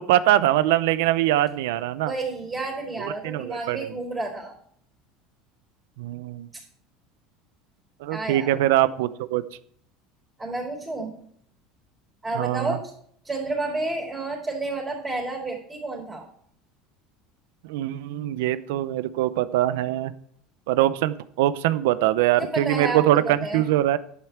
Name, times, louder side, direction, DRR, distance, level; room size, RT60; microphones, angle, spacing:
voice 1, 0.0-2.1 3.0-3.9 6.0-6.5 8.0-9.4 12.4-12.8 17.6-20.1 20.7-24.0, right 14 dB, 85° right, 15 dB, 0.6 m, -23 dB
voice 2, 2.0-4.5 8.1-8.5 10.4-11.1 12.2-12.8 13.2-16.2 22.3-23.0 23.4-23.7, right 2 dB, 15° right, -1 dB, 3.9 m, -30 dB
11.0 x 8.3 x 4.5 m, 0.63 s
cardioid pair, 145°, 0 cm